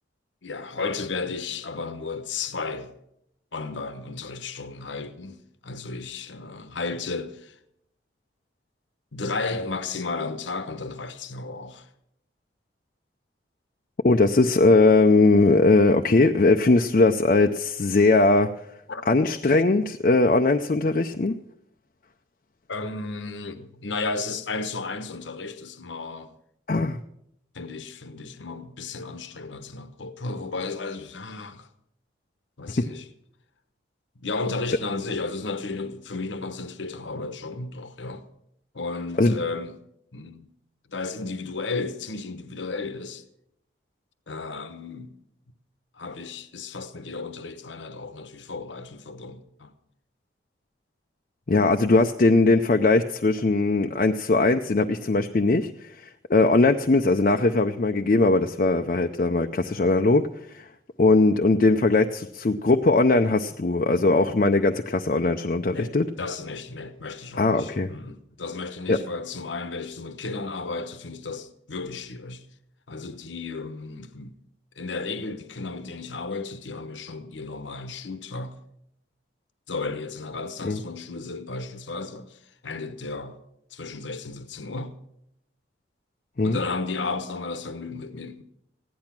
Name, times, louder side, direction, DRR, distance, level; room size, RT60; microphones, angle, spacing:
voice 1, 0.4-2.9 3.5-7.6 9.1-11.9 18.9-19.1 19.4-19.6 22.7-26.4 27.5-31.7 32.6-33.1 34.2-38.3 38.7-39.8 40.1-40.5 40.9-43.2 44.3-45.2 46.0-49.7 56.4-56.6 65.7-72.4 72.9-74.4 74.8-78.6 79.7-83.4 83.7-84.9 86.4-88.4, left 3 dB, 85° left, 1.0 m, -34 dB
voice 2, 14.0-18.5 19.1-21.4 26.7-27.0 32.8-32.9 39.2-39.4 51.5-60.3 60.5-60.7 61.0-66.1 67.4-67.9 68.9-69.0 80.6-80.8 86.4-86.6, left 3 dB, 45° left, 0.5 m, -20 dB
16.0 x 10.5 x 5.9 m
head